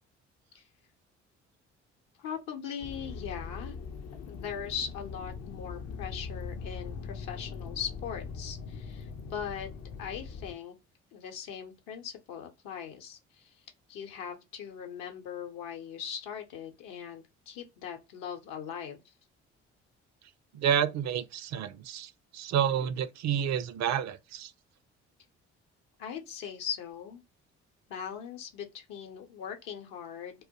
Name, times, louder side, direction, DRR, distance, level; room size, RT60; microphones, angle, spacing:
voice 1, 2.2-3.8 4.3-9.7 10.0-10.8 11.1-13.5 13.9-19.1 26.0-27.2 27.9-30.5, left 8 dB, 70° left, 0.8 m, -40 dB
sound 1, 2.8-10.5, left 5 dB, 45° left, 0.5 m, -41 dB
voice 2, 20.5-24.5, right 9 dB, 50° right, 0.4 m, -29 dB
2.2 x 2.0 x 2.7 m
hypercardioid pair, 50°, 35 cm